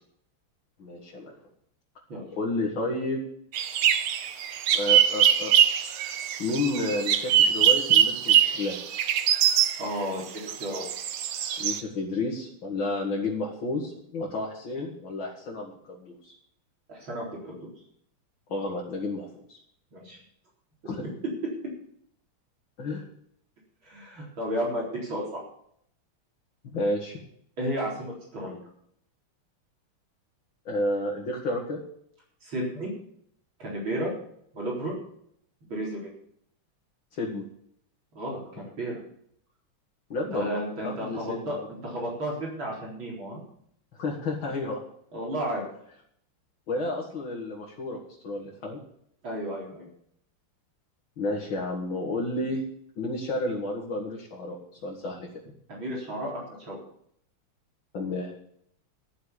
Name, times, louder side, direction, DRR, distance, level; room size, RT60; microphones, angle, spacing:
voice 1, 0.8-1.3 2.4-3.2 4.7-5.5 6.4-8.8 11.6-16.3 18.5-19.6 20.8-21.0 22.8-23.1 26.6-27.2 30.7-31.8 37.1-37.4 40.1-41.6 44.0-44.8 46.7-48.0 48.2-48.8 51.2-52.6 53.0-55.3 57.9-58.3, left 2 dB, 65° left, -3 dB, 2.9 m, -31 dB
sound 1, 3.5-9.8 10.4-11.8, right 9 dB, 80° right, 1.9 m, -23 dB
voice 2, 9.8-10.8 16.9-17.7 19.9-20.2 23.8-25.4 27.6-28.6 32.4-32.9 33.6-34.1 34.5-34.9 35.7-36.1 38.1-39.0 40.3-43.4 45.1-45.7 49.2-49.9 55.7-56.8, equal, 65° right, -3 dB, 4.9 m, -33 dB
13.5 x 7.0 x 8.3 m, 0.69 s
omnidirectional pair, 2.4 m